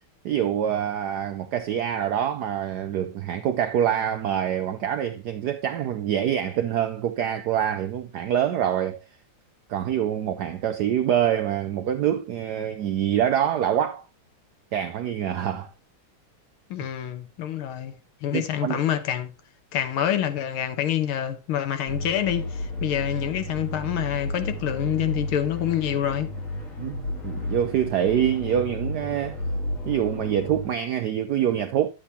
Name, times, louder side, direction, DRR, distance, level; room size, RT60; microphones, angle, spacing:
voice 1, 0.2-9.0 9.7-14.1 14.7-15.7 18.3-18.8 26.8-29.4 29.9-31.9, right 10 dB, 80° right, 0.9 m, -25 dB
voice 2, 16.7-17.9 18.2-19.3 19.7-26.3, left 10 dB, 80° left, 1.8 m, -27 dB
sound 1, 21.9-30.7, left 1 dB, 35° left, 2.7 m, -32 dB
10.0 x 8.0 x 2.7 m
omnidirectional pair, 2.3 m